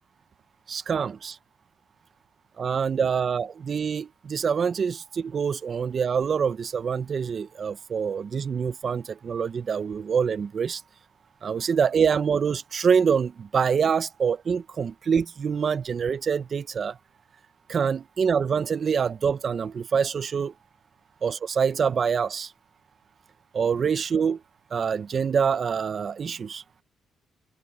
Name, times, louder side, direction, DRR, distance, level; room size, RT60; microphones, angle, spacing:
voice 1, 0.7-1.4 2.6-10.8 11.4-16.9 17.7-20.5 21.2-22.5 23.5-24.4 24.7-26.6, right 6 dB, 45° right, 0.9 m, -25 dB
cardioid pair, 95°, 0 cm